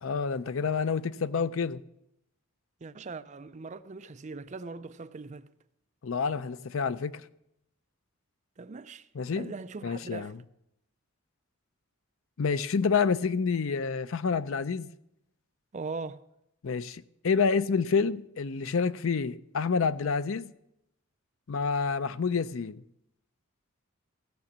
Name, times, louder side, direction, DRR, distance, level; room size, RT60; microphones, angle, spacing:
voice 1, 0.0-1.8 6.0-7.2 9.1-9.5 9.8-10.4 12.4-14.9 16.6-20.5 21.5-22.8, left 5 dB, 70° left, 0.5 m, -28 dB
voice 2, 2.8-5.5 8.6-9.1 9.4-10.3 15.7-16.2, right 4 dB, 35° right, 0.4 m, -40 dB
16.0 x 6.1 x 7.3 m
head